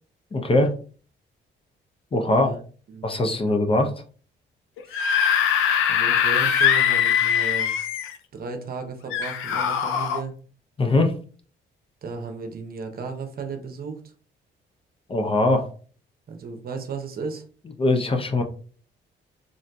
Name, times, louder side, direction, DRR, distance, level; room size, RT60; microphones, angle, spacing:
voice 1, 0.3-0.7 2.1-2.5 3.0-3.9 10.8-11.1 15.1-15.7 17.8-18.4, left 2 dB, 30° left, 5 dB, 0.5 m, -21 dB
voice 2, 2.3-2.6 2.9-3.1 4.8-5.0 5.9-7.7 8.3-10.3 12.0-14.0 16.3-17.4, right 4 dB, 50° right, 5 dB, 0.8 m, -34 dB
Screaming / Screech, 4.8-8.2 9.1-10.2, left 8 dB, 85° left, 0.4 m, -22 dB
3.8 x 2.5 x 2.3 m, 0.41 s
cardioid pair, 90°, 20 cm